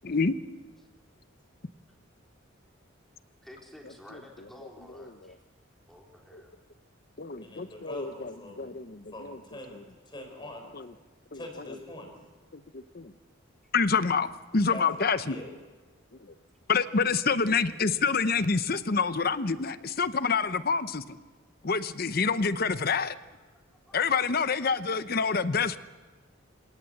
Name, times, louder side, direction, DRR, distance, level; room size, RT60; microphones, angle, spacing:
voice 1, 0.0-0.3 7.2-9.4 10.7-10.9 11.3-11.4 12.5-13.1 13.7-15.4 16.7-21.2 21.6-23.1 23.9-25.8, left 5 dB, 50° left, 13 dB, 0.8 m, -27 dB
voice 2, 3.4-5.4 5.9-6.6 23.9-24.0, left 1 dB, ahead, -1 dB, 3.9 m, -51 dB
voice 3, 7.4-8.7 9.1-9.8 10.0-10.7 11.3-12.1 14.7-15.5, left 1 dB, 25° left, 3 dB, 4.6 m, -43 dB
27.5 x 17.5 x 7.9 m, 1.3 s
head